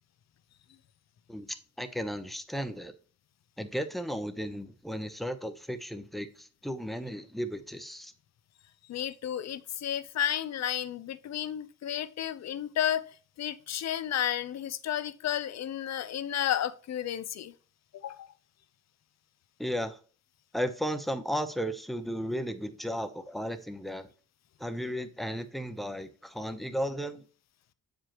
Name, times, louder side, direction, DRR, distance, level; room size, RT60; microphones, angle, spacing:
voice 1, 1.3-2.9 3.6-8.1 19.6-20.0 20.5-24.1 24.6-27.2, equal, ahead, 0.8 m, -34 dB
voice 2, 8.9-13.0 13.4-17.5 17.9-18.3, left 10 dB, 60° left, 0.6 m, -32 dB
7.4 x 5.0 x 2.9 m
cardioid pair, 85°, 31 cm